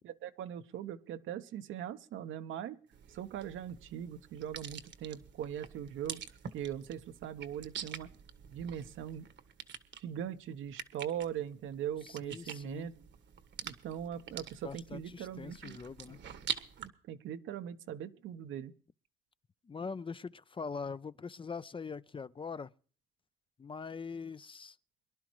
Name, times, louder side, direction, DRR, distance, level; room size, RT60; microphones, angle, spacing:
voice 1, 0.0-2.8 3.1-6.2 6.5-8.1 8.5-9.2 10.0-12.9 13.6-15.8 16.8-18.7, right 9 dB, 80° right, 1.1 m, -40 dB
sound 1, 2.9-16.9, right 8 dB, 65° right, 1.4 m, -46 dB
voice 2, 12.0-12.9 14.6-16.2 19.6-22.7 23.6-24.8, left 5 dB, 25° left, 0.5 m, -42 dB
23.5 x 11.5 x 3.1 m
cardioid pair, 90°, 20 cm